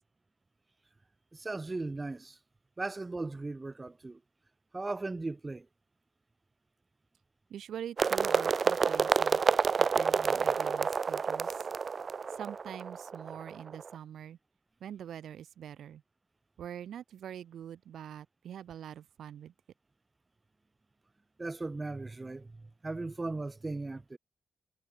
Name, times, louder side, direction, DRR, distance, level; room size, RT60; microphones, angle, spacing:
voice 1, 1.3-2.4 2.8-4.2 4.7-5.7 21.4-24.2, right 3 dB, 25° right, 1.7 m, -37 dB
voice 2, 7.5-11.6 12.3-14.4 14.8-16.0 16.6-19.5, right 9 dB, 85° right, 4.2 m, -44 dB
sound 1, 8.0-13.9, right 5 dB, 45° right, 0.3 m, -29 dB
cardioid pair, 100°, 0 cm